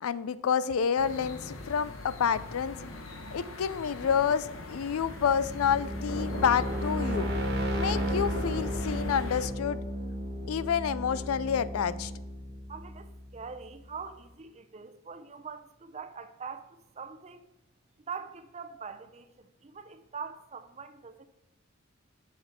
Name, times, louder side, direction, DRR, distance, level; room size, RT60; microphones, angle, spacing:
voice 1, 0.0-2.8 3.3-7.3 7.7-9.8 10.5-12.1, left 7 dB, 90° left, 0.4 m, -29 dB
sound 1, 1.0-9.5, left 2 dB, 70° left, 0.9 m, -41 dB
Rase and Fall, 4.9-13.7, equal, 50° right, 1.3 m, -34 dB
voice 2, 12.7-17.5 18.1-21.2, right 5 dB, 30° right, 0.5 m, -43 dB
7.3 x 5.9 x 4.4 m
head